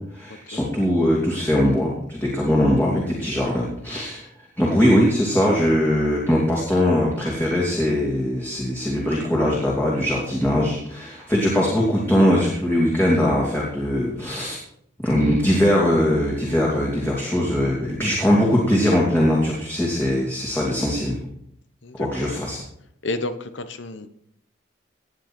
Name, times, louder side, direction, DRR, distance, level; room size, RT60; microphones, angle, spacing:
voice 1, 0.1-4.2 4.6-14.6 15.0-21.2 22.0-22.6, equal, 10° left, -5 dB, 2.6 m, -21 dB
voice 2, 21.8-22.3 23.0-24.1, left 2 dB, 70° left, 10 dB, 1.2 m, -31 dB
17.5 x 9.4 x 4.5 m, 0.71 s
head